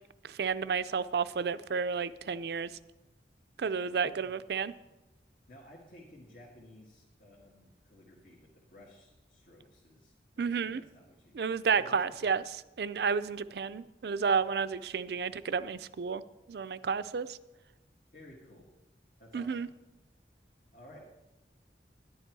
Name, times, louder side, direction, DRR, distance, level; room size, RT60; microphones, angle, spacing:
voice 1, 0.2-2.7 3.6-4.7 10.4-10.8 11.3-16.2 16.5-17.4 19.3-19.7, right 6 dB, 70° right, 15 dB, 0.4 m, -31 dB
voice 2, 3.8-4.3 5.5-12.4 12.9-13.1 18.1-18.7 19.2-19.7 20.7-21.1, equal, 55° left, -4 dB, 1.8 m, -55 dB
11.0 x 10.5 x 4.6 m, 1.0 s
head